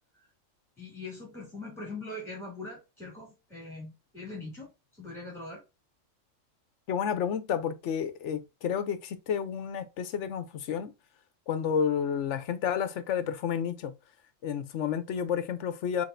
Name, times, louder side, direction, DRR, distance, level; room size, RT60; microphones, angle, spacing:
voice 1, 0.8-5.6, left 2 dB, ahead, 2.6 m, -42 dB
voice 2, 6.9-10.9 11.5-13.9 14.4-16.0, left 8 dB, 70° left, 0.9 m, -30 dB
5.8 x 3.2 x 2.5 m
omnidirectional pair, 1.3 m